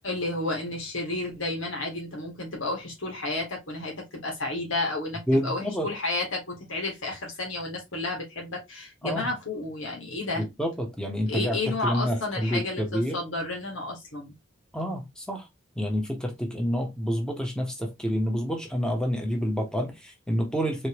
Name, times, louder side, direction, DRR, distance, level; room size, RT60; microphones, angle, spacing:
voice 1, 0.0-10.4 11.3-14.3, left 2 dB, 85° left, 1.9 m, -32 dB
voice 2, 5.3-5.9 9.0-9.3 10.4-13.2 14.7-15.5 15.8-20.9, equal, 5° left, 1.0 m, -28 dB
4.0 x 3.2 x 3.0 m
head